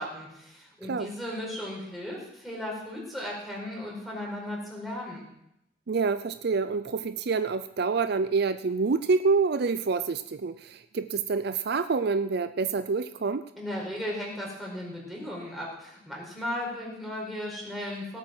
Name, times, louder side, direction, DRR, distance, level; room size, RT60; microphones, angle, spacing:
voice 1, 0.0-5.2 13.6-18.2, left 1 dB, ahead, -4 dB, 4.8 m, -36 dB
voice 2, 5.9-13.5, right 4 dB, 60° right, 11 dB, 0.5 m, -27 dB
18.0 x 8.4 x 6.1 m, 0.81 s
head